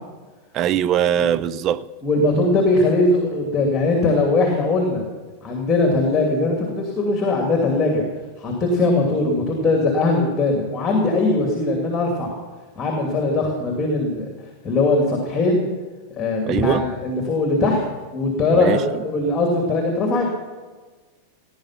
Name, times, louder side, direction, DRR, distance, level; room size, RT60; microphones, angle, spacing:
voice 1, 0.5-1.8 16.5-16.8 18.5-19.0, right 10 dB, 35° right, 0.5 m, -21 dB
voice 2, 2.0-5.0 5.4-8.0 8.4-12.3 12.8-14.2 14.6-15.6 16.2-17.8 18.1-20.3, left 2 dB, 20° left, 2.7 m, -20 dB
17.5 x 10.0 x 5.8 m
figure-of-eight pair, 90°, 0 cm